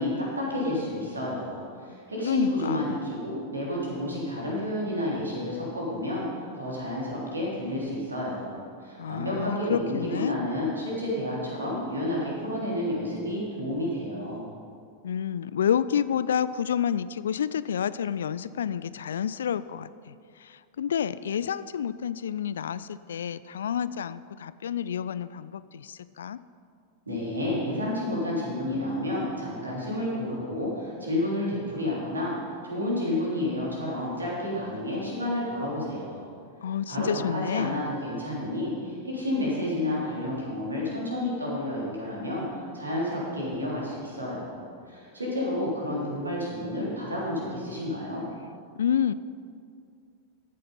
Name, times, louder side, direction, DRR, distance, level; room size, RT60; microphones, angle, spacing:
voice 1, 0.0-6.3 6.5-14.4 27.1-32.3 32.6-36.3 36.9-48.3, left 1 dB, 75° right, -5 dB, 3.5 m, -30 dB
voice 2, 2.2-2.9 9.0-10.4 15.0-20.1 20.4-26.4 36.6-37.8 48.8-49.1, left 8 dB, 65° left, 16 dB, 0.3 m, -29 dB
13.5 x 7.6 x 5.5 m, 2.3 s
figure-of-eight pair, 90°, 0 cm